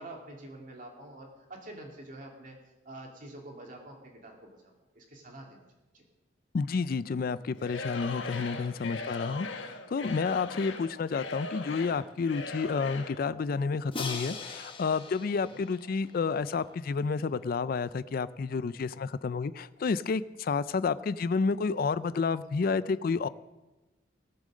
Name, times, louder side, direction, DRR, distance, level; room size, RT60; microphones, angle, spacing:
voice 1, 0.0-2.6 2.8-5.7 5.9-6.0 15.5-15.6, right 1 dB, 45° right, 1 dB, 2.6 m, -47 dB
voice 2, 6.5-23.3, left 5 dB, 50° left, 16 dB, 0.4 m, -30 dB
Singing / Crowd, 7.6-13.2, left 3 dB, 90° left, 1.2 m, -39 dB
Crash cymbal, 13.9-16.9, left 4 dB, 30° left, 1.2 m, -41 dB
18.0 x 7.6 x 6.4 m, 1.1 s
head